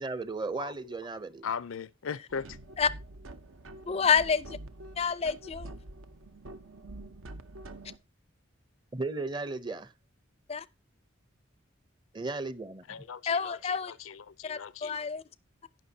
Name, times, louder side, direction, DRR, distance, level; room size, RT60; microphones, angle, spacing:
voice 1, 0.0-1.5 8.9-9.9 12.1-13.0, right 3 dB, 20° right, 0.6 m, -35 dB
voice 2, 0.6-0.9 1.4-2.6 12.9-15.0, left 6 dB, 80° left, 0.5 m, -39 dB
sound 1, 2.3-8.0, right 1 dB, 85° right, 0.9 m, -46 dB
voice 3, 3.9-4.6 5.0-5.7 10.5-10.7 13.3-13.9 14.4-15.2, left 6 dB, 30° left, 0.4 m, -28 dB
17.5 x 5.9 x 2.7 m
head